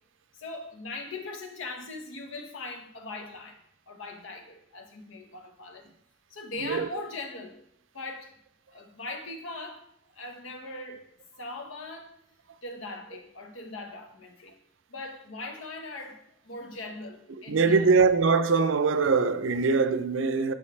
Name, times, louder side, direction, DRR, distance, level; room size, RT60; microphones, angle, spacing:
voice 1, 0.4-3.6 3.9-5.9 6.3-7.6 7.9-8.3 8.7-9.8 10.1-11.0 11.4-12.2 12.6-14.5 14.9-16.2 16.4-18.0, left 2 dB, 90° left, 1.2 m, -40 dB
voice 2, 17.5-20.5, right 4 dB, 75° right, 0.5 m, -22 dB
9.5 x 5.6 x 3.2 m
head